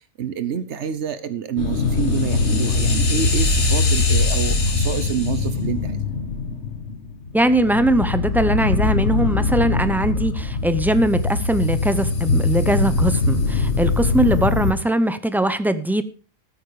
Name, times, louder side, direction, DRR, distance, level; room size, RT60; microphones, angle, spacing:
voice 1, 0.2-6.0, right 8 dB, 80° right, 12 dB, 1.2 m, -28 dB
sound 1, 1.6-14.7, left 3 dB, 85° left, 1.8 m, -21 dB
voice 2, 7.3-16.0, right 1 dB, ahead, 12 dB, 0.8 m, -21 dB
14.0 x 8.8 x 5.0 m, 0.37 s
omnidirectional pair, 1.2 m